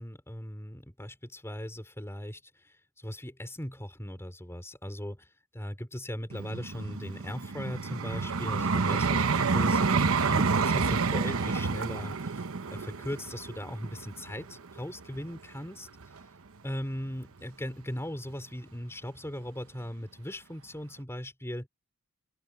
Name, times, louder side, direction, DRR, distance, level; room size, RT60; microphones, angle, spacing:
voice 1, 0.0-15.9 16.6-21.7, equal, 10° left, 4.8 m, -39 dB
Vehicle, 6.3-15.4 16.0-16.2, right 4 dB, 70° right, 0.9 m, -29 dB
open air
head